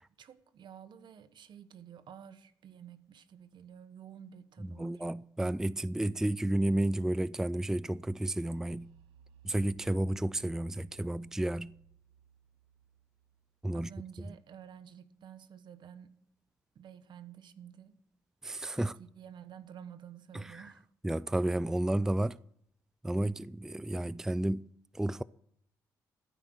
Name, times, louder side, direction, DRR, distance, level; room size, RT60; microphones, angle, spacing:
voice 1, 0.2-5.0 13.7-16.2 16.7-17.9 18.8-20.9, right 9 dB, 65° right, 1.2 m, -51 dB
voice 2, 4.6-8.9 9.4-11.7 13.6-13.9 18.4-18.9 20.3-20.7 21.0-22.4 23.0-24.6 24.9-25.2, right 1 dB, 5° right, 0.4 m, -31 dB
sound 1, 7.6-15.3, right 8 dB, 80° right, 1.0 m, -62 dB
14.5 x 8.9 x 6.3 m
supercardioid pair, 50°, 9 cm